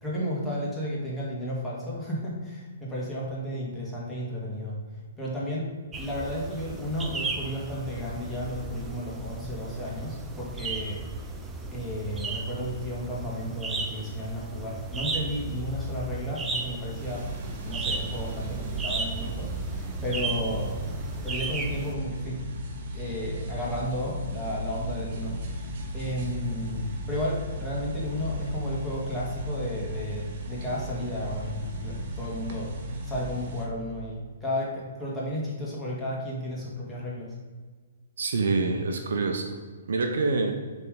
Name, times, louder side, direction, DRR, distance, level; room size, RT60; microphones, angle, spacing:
voice 1, 0.0-4.8 5.2-5.7 6.0-11.0 11.7-17.3 17.6-20.7 21.2-22.4 22.9-37.3, equal, 5° left, -6 dB, 2.0 m, -33 dB
sound 1, 5.9-21.9, right 3 dB, 15° right, 0.6 m, -35 dB
sound 2, 17.0-33.7, right 1 dB, 50° right, 1.2 m, -35 dB
voice 2, 38.2-39.6 39.9-40.5, right 3 dB, 70° right, 4 dB, 0.8 m, -26 dB
6.8 x 3.6 x 5.0 m, 1.5 s
hypercardioid pair, 130°, 0 cm